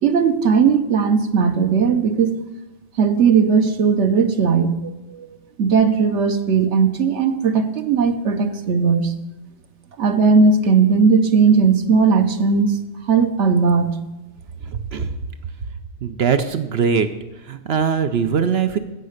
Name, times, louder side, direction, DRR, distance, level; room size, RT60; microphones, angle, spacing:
voice 1, 0.0-2.4 3.0-4.7 5.1-5.3 5.6-9.1 10.0-12.8 13.1-14.0, right 5 dB, 90° right, 7 dB, 1.3 m, -17 dB
voice 2, 14.7-15.2 16.0-17.1 17.4-18.8, right 6 dB, 70° right, 9 dB, 1.0 m, -21 dB
15.5 x 6.6 x 6.6 m, 1.1 s
omnidirectional pair, 1.1 m